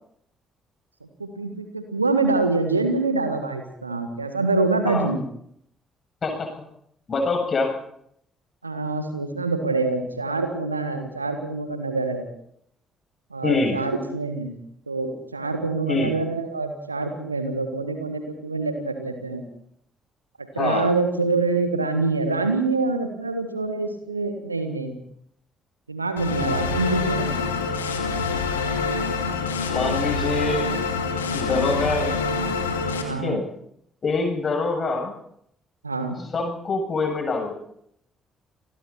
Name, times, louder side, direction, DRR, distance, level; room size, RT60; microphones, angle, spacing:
voice 1, 1.2-5.2 8.6-12.3 13.3-14.6 14.9-19.4 20.4-25.0 25.9-27.5 33.0-33.4 35.8-36.2, right 3 dB, 85° right, 7 dB, 1.7 m, -25 dB
voice 2, 7.1-7.7 13.4-13.8 15.9-16.1 20.6-20.9 29.7-30.7 31.3-32.2 33.1-33.4 34.0-35.1 36.3-37.5, left 3 dB, 40° left, 1 dB, 7.8 m, -25 dB
sound 1, 26.2-33.0, left 4 dB, 80° left, 2.6 m, -26 dB
29.0 x 21.0 x 4.5 m, 0.73 s
figure-of-eight pair, 45°, 0 cm